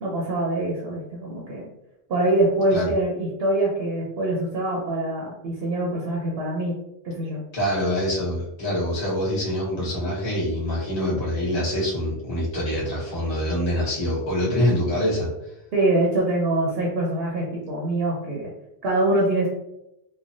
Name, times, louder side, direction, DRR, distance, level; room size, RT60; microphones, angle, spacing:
voice 1, 0.0-1.7 2.1-6.8 7.0-7.4 15.7-18.5 18.8-19.5, right 1 dB, 70° right, -3 dB, 0.8 m, -24 dB
voice 2, 7.5-15.3, left 1 dB, 35° left, -7 dB, 1.1 m, -25 dB
3.0 x 2.2 x 2.5 m, 0.88 s
omnidirectional pair, 1.2 m